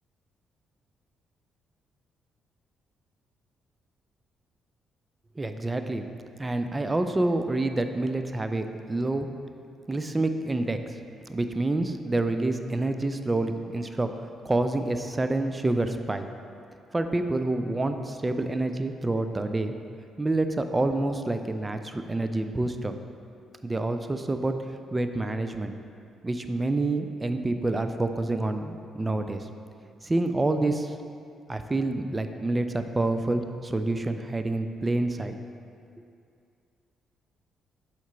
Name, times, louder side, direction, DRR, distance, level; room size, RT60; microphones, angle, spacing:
voice 1, 5.4-6.0 6.4-9.3 9.9-10.8 11.3-14.1 14.4-16.2 16.9-19.7 20.2-22.9 23.6-24.5 24.9-25.7 26.2-29.5 30.0-30.9 31.5-35.4, right 2 dB, 20° right, 8 dB, 0.4 m, -27 dB
7.2 x 4.5 x 3.9 m, 2.4 s
figure-of-eight pair, 40°, 0 cm